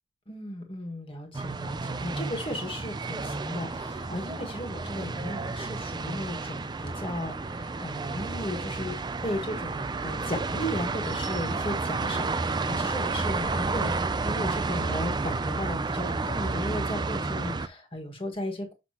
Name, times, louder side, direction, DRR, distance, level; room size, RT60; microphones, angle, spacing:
voice 1, 0.3-9.0 9.2-13.9 14.2-18.7, left 1 dB, 25° left, 1.7 m, -35 dB
sound 1, 1.3-17.7, right 3 dB, 20° right, 0.3 m, -31 dB
7.7 x 5.8 x 2.9 m
head